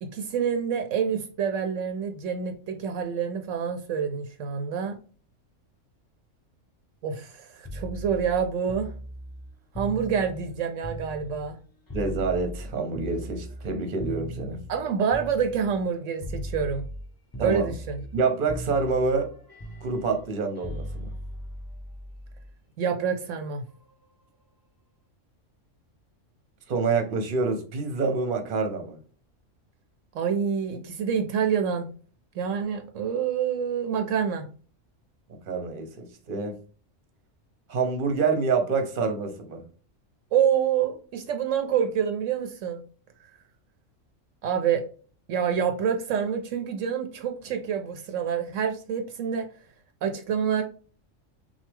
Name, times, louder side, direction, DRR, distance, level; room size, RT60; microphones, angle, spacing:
voice 1, 0.0-5.0 7.0-8.9 9.7-11.6 14.7-16.8 17.4-18.0 22.8-23.6 30.1-31.9 32.3-34.5 40.3-42.8 44.4-44.8 45.3-49.5 50.0-50.6, right 7 dB, 75° right, 6 dB, 0.9 m, -27 dB
sound 1, 7.6-11.6 11.9-15.9 16.2-17.1 17.3-18.2 18.5-22.5 23.7-23.9, equal, 20° left, 0.6 m, -38 dB
voice 2, 11.9-14.6 17.4-17.7 18.1-19.3 19.8-21.1 26.7-29.0 35.3-35.9 36.3-36.5 37.7-39.6, right 4 dB, 45° right, 6 dB, 0.9 m, -27 dB
6.0 x 2.3 x 3.5 m, 0.40 s
omnidirectional pair, 1.3 m